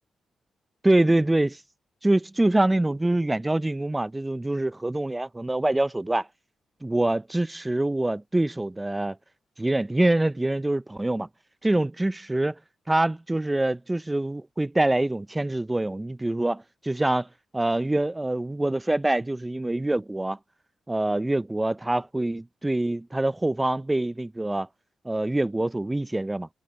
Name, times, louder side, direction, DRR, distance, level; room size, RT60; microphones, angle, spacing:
voice 1, 0.8-1.6 2.0-6.3 6.8-9.2 9.6-11.3 11.6-12.6 12.9-17.3 17.5-20.4 20.9-24.7 25.0-26.5, right 1 dB, 15° right, 0.5 m, -25 dB
supercardioid pair, 55°, 0 cm